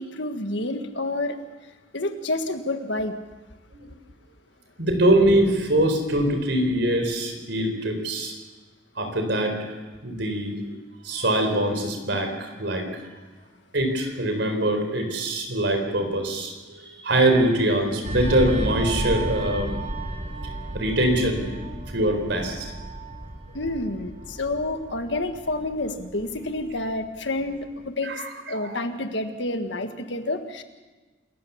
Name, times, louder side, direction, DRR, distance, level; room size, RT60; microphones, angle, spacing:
voice 1, 0.0-1.4 1.9-3.2 23.5-28.1 28.5-30.6, left 2 dB, 75° left, 7 dB, 1.7 m, -29 dB
voice 2, 4.8-8.3 9.0-9.6 10.0-10.7 11.0-12.9 13.7-19.8 20.7-21.4 21.9-22.7 28.0-28.3 28.5-28.8, right 1 dB, 70° right, 5 dB, 4.3 m, -23 dB
sound 1, 18.0-27.1 27.4-27.7, right 1 dB, 40° right, 3.4 m, -33 dB
27.5 x 14.5 x 7.1 m, 1.3 s
head